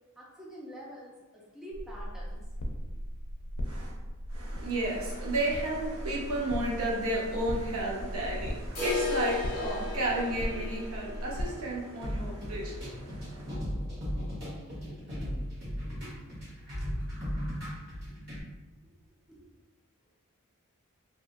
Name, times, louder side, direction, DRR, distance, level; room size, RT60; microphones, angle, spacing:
voice 1, 0.2-2.4 10.6-11.7 15.0-15.3 16.2-16.5 19.3-19.5, right 1 dB, ahead, -5 dB, 0.4 m, -48 dB
sound 1, 1.7-11.5, equal, 85° left, 0.5 m, -38 dB
voice 2, 4.3-13.5, right 1 dB, 70° right, -3 dB, 0.7 m, -32 dB
sound 2, 8.8-14.6 14.9-15.0 15.3-15.4 15.9-16.0 16.9-17.0, left 3 dB, 40° left, 1.1 m, -37 dB
sound 3, 12.0-18.4, equal, 50° right, 1.2 m, -36 dB
2.7 x 2.5 x 2.5 m, 1.2 s
head